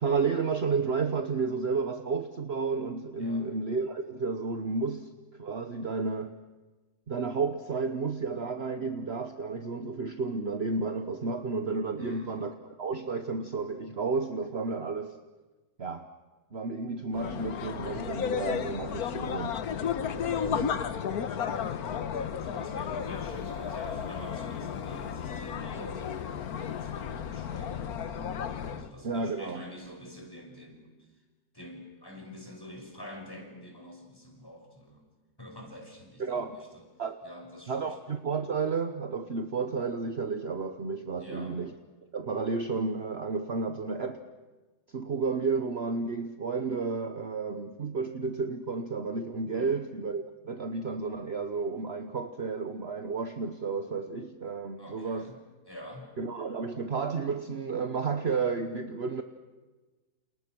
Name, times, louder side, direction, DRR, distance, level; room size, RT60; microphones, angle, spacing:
voice 1, 0.0-6.4 7.1-12.5 12.8-15.2 15.8-16.1 16.5-19.6 20.4-20.7 29.0-29.6 36.2-36.6 37.0-37.2 37.7-41.7 42.1-44.2 44.9-55.3 56.2-59.2, right 4 dB, 45° right, 8 dB, 1.3 m, -32 dB
voice 2, 12.0-12.4 20.1-26.2 26.6-28.4 28.7-30.9 31.5-35.1 35.4-36.9 37.2-38.0 41.2-41.6 49.5-49.8 54.8-55.4 55.7-56.1, left 1 dB, 15° left, 2 dB, 5.7 m, -46 dB
sound 1, 17.1-28.9, left 8 dB, 70° left, 1.5 m, -33 dB
Female singing, 22.9-28.1, left 6 dB, 85° left, 2.6 m, -51 dB
29.0 x 28.5 x 6.2 m, 1.2 s
omnidirectional pair, 1.7 m